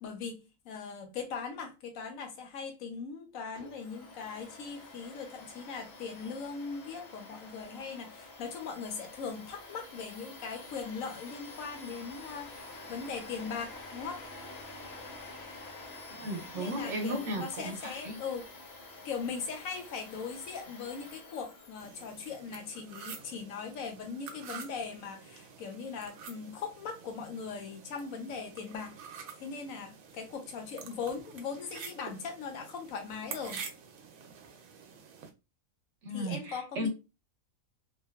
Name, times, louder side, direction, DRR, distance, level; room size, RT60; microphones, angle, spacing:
voice 1, 0.0-14.2 16.6-18.5 19.0-28.9 29.4-33.6 36.1-36.9, left 5 dB, 75° left, 1.0 m, -40 dB
Domestic sounds home sounds, 3.5-22.4, left 2 dB, 55° left, 0.8 m, -48 dB
voice 2, 16.1-18.2 36.0-36.9, equal, 65° right, 1.0 m, -35 dB
sound 1, 21.8-35.3, right 6 dB, 90° right, 1.0 m, -48 dB
2.9 x 2.0 x 2.3 m
omnidirectional pair, 1.4 m